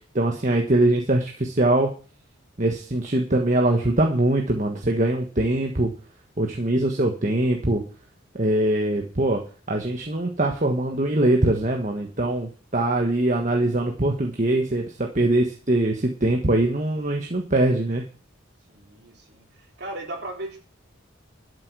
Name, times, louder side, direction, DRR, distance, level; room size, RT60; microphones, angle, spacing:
voice 1, 0.1-1.9 2.6-5.9 6.4-7.8 8.3-9.4 9.7-18.0, right 1 dB, 40° right, 2 dB, 1.4 m, -22 dB
voice 2, 18.7-20.6, right 1 dB, 55° right, 0 dB, 3.8 m, -37 dB
12.5 x 8.1 x 6.2 m, 0.38 s
head